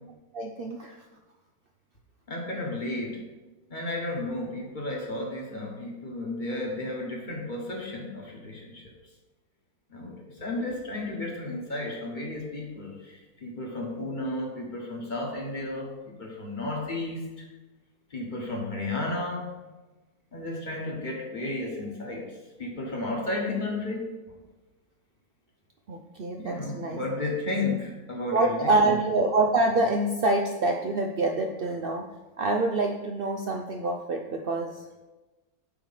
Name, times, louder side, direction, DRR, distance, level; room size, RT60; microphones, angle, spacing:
voice 1, 0.3-1.0 13.9-14.3 25.9-27.0 28.3-32.1 32.4-34.8, right 2 dB, 85° right, 2 dB, 0.5 m, -26 dB
voice 2, 2.3-3.2 3.7-8.9 9.9-15.9 16.2-17.4 18.1-19.5 20.3-22.3 22.6-24.2 26.4-28.8, left 2 dB, 35° left, -1 dB, 1.2 m, -33 dB
8.3 x 3.1 x 5.6 m, 1.2 s
omnidirectional pair, 1.6 m